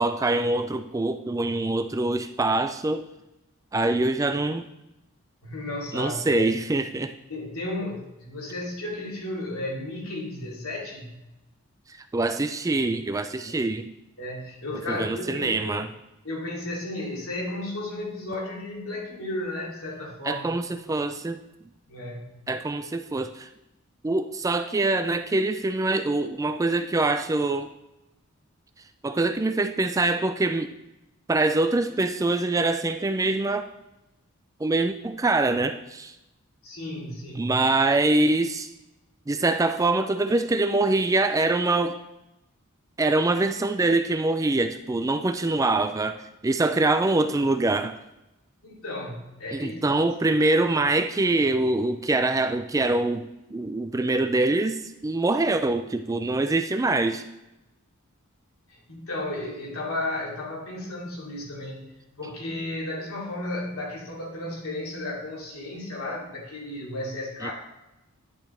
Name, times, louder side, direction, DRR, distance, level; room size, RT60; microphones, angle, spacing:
voice 1, 0.0-3.0 3.7-4.6 5.9-7.1 12.1-13.9 14.9-15.9 20.3-21.4 22.5-23.5 24.0-27.7 29.0-30.7 31.3-33.7 34.6-36.1 37.4-38.7 39.3-42.0 43.0-48.0 49.5-57.3 67.4-67.5, right 2 dB, 15° right, 9 dB, 0.3 m, -24 dB
voice 2, 5.4-6.4 7.3-11.1 14.2-15.8 16.2-20.5 21.9-22.3 22.8-22.9 36.6-37.6 48.6-49.8 50.2-50.3 58.7-67.5, left 1 dB, 75° left, -3 dB, 2.7 m, -34 dB
10.0 x 6.9 x 3.3 m, 0.94 s
head